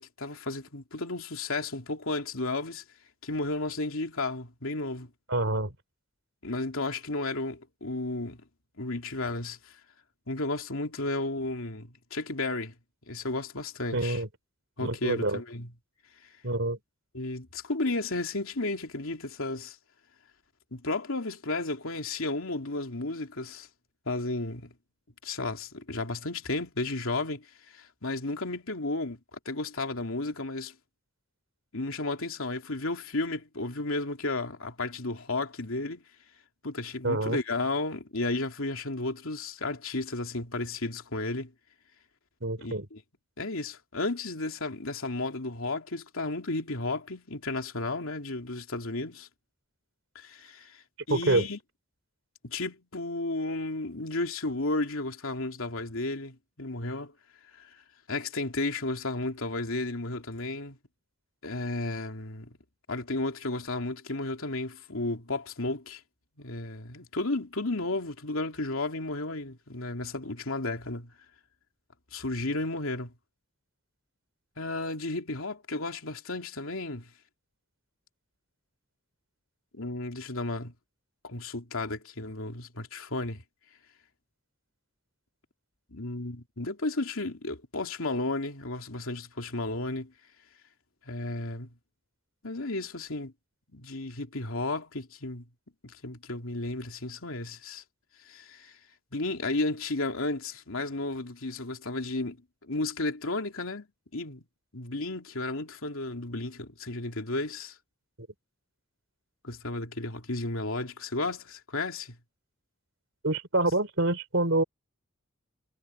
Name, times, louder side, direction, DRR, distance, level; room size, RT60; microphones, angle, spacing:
voice 1, 0.0-2.8 3.2-5.1 6.4-8.4 8.8-9.7 10.3-12.7 13.1-14.2 14.8-15.7 17.1-19.8 20.7-23.7 24.1-24.7 25.2-27.5 27.7-30.7 31.7-36.0 36.6-41.5 42.6-43.0 43.4-49.3 50.1-51.6 52.4-57.1 57.6-57.7 58.1-60.8 61.4-62.5 62.9-66.0 66.4-71.1 72.1-73.1 74.6-77.1 79.7-80.7 81.2-83.4 85.9-90.1 91.1-91.7 92.4-93.3 93.7-95.4 95.8-97.8 98.3-98.7 99.1-102.4 102.6-103.9 104.1-104.4 104.7-107.7 109.4-112.2, left 2 dB, 75° left, 2.9 m, -33 dB
voice 2, 5.3-5.7 13.9-14.3 14.8-15.4 16.4-16.8 37.0-37.4 42.4-42.9 51.1-51.4 113.2-114.6, right 2 dB, 65° right, 3.5 m, -26 dB
head